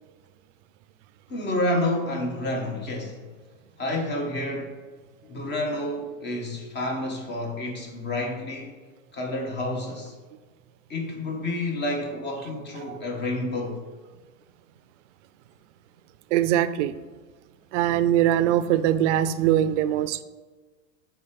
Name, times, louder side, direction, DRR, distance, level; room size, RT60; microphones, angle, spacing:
voice 1, 1.3-3.2 3.8-4.7 5.2-8.7 9.1-10.1 10.9-13.8, left 1 dB, 25° left, 1.6 m, -29 dB
voice 2, 16.3-16.9 17.7-20.2, right 11 dB, 60° right, 0.6 m, -22 dB
6.9 x 4.6 x 5.2 m
supercardioid pair, 125°, 41 cm